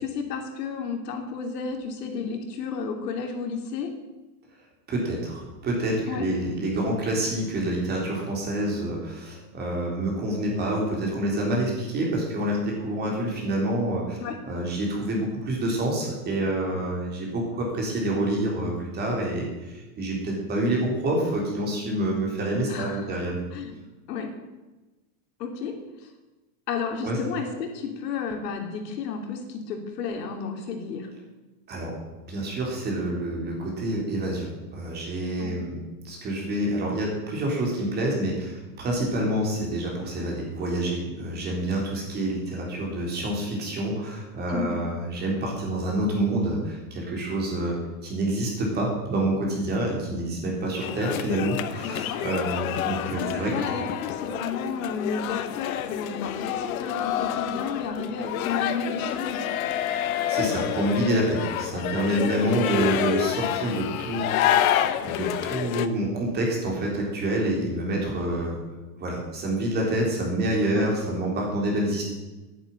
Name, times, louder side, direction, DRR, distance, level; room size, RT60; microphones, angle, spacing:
voice 1, 0.0-3.9 6.1-6.3 14.2-14.4 16.7-16.8 22.7-23.2 23.5-23.8 24.1-24.4 25.4-26.1 26.7-31.1 35.4-35.5 44.5-44.8 51.8-52.2 53.2-59.4 62.2-62.5 70.7-70.9, left 5 dB, 80° left, 4 dB, 3.2 m, -32 dB
voice 2, 4.9-14.2 14.5-23.4 27.0-27.2 31.7-32.0 32.3-47.8 48.0-53.8 60.0-64.6 65.0-68.6 69.0-72.0, right 1 dB, 20° right, -1 dB, 3.9 m, -27 dB
sound 1, 50.8-65.9, left 11 dB, 60° left, 1.0 m, -28 dB
10.5 x 10.0 x 9.1 m, 1.1 s
supercardioid pair, 170°, 48 cm